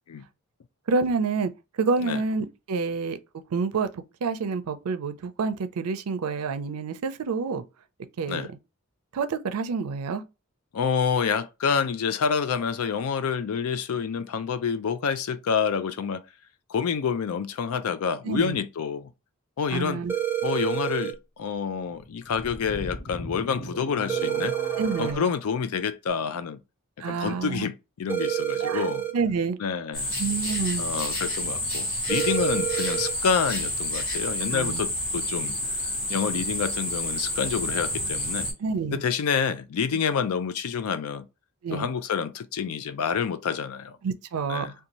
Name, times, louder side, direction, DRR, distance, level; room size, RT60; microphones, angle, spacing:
voice 1, 0.9-1.5 1.8-3.2 3.5-7.6 8.2-8.6 9.1-10.2 18.2-18.5 19.7-20.1 24.8-25.3 27.0-27.7 28.6-28.8 29.1-29.6 30.2-30.8 34.5-34.8 38.6-39.0 41.6-41.9 44.0-44.7, right 4 dB, 80° right, 0.4 m, -28 dB
voice 2, 10.7-16.2 16.7-19.1 19.6-20.0 20.4-24.6 25.0-26.6 27.0-29.0 29.6-30.1 30.8-35.6 36.1-38.5 38.9-41.3 41.7-44.0 44.5-44.7, left 6 dB, 80° left, 0.4 m, -28 dB
sound 1, 20.1-21.1 24.1-25.1 28.1-29.1 32.1-33.1, right 11 dB, 10° right, 0.4 m, -28 dB
sound 2, 22.0-25.1, equal, 40° left, 0.8 m, -38 dB
sound 3, 29.9-38.5, left 1 dB, 60° left, 1.4 m, -29 dB
2.6 x 2.3 x 2.9 m
head